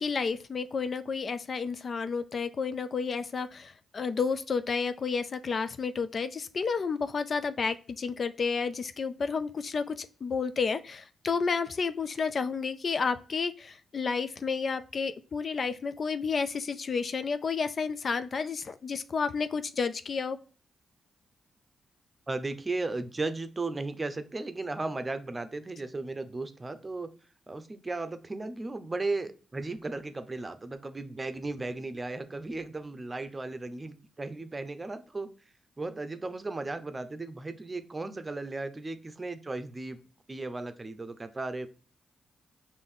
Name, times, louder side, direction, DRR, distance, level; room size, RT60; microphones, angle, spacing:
voice 1, 0.0-20.4, left 5 dB, 55° left, 11 dB, 0.4 m, -31 dB
voice 2, 22.3-27.1 27.5-35.3 35.8-40.0 40.3-41.7, right 3 dB, 30° right, 10 dB, 0.6 m, -35 dB
5.1 x 2.6 x 3.7 m, 0.38 s
supercardioid pair, 50°, 0 cm